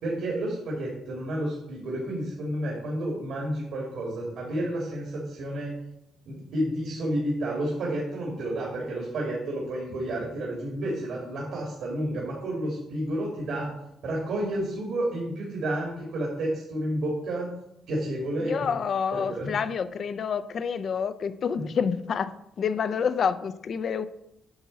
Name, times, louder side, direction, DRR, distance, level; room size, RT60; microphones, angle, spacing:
voice 1, 0.0-5.8 6.3-13.7 14.0-17.5 17.9-18.7 19.1-19.5, right 1 dB, 75° right, -3 dB, 2.4 m, -30 dB
voice 2, 18.4-22.3 22.6-24.1, left 6 dB, 55° left, 12 dB, 0.5 m, -28 dB
8.8 x 6.1 x 4.1 m, 0.83 s
cardioid pair, 90°, 0 cm